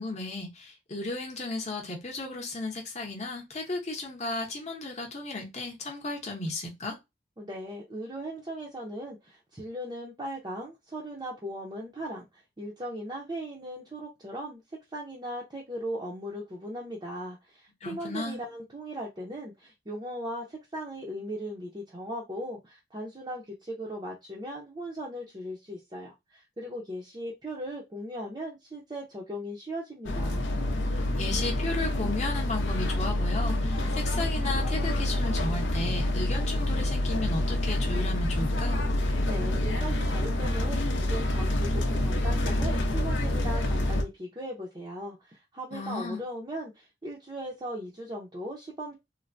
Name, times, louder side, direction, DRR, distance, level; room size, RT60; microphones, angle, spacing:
voice 1, 0.0-7.0 17.8-18.4 31.2-38.8 45.7-46.2, left 2 dB, 35° left, 0.8 m, -34 dB
voice 2, 7.4-14.6 14.9-30.5 39.2-48.9, equal, 20° right, 0.5 m, -38 dB
sound 1, 30.0-44.0, left 1 dB, 80° left, 0.6 m, -27 dB
3.2 x 2.1 x 2.5 m
head